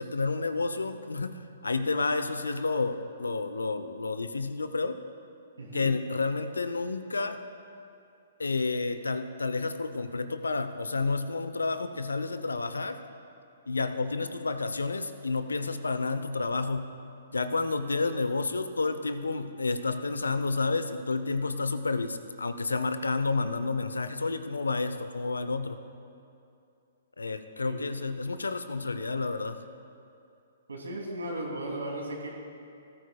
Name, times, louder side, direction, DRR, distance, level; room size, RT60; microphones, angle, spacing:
voice 1, 0.0-5.0 5.7-7.4 8.4-13.0 13.7-16.9 17.3-25.8 27.2-29.6, left 3 dB, 75° left, 11 dB, 0.7 m, -30 dB
voice 2, 5.6-5.9 27.6-27.8 30.7-32.4, right 1 dB, 75° right, -2 dB, 2.8 m, -36 dB
19.5 x 13.5 x 2.3 m, 2.6 s
figure-of-eight pair, 120°, 0 cm